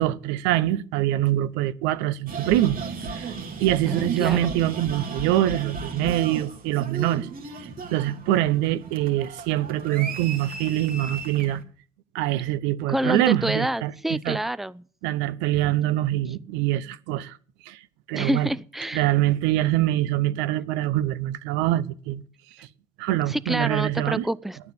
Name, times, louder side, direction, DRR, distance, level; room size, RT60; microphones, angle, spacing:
voice 1, 0.0-3.3 3.6-11.6 12.1-14.4 15.0-17.4 17.6-17.8 18.1-18.5 18.9-22.2 22.6-22.7 23.0-24.3, right 14 dB, 75° right, 0.7 m, -24 dB
sound 1, 2.3-11.6, right 5 dB, 50° right, 2.3 m, -35 dB
voice 2, 3.9-4.4 12.9-14.8 18.1-19.0 23.3-24.6, right 1 dB, ahead, 0.6 m, -27 dB
12.0 x 9.2 x 6.9 m
hypercardioid pair, 60°, 19 cm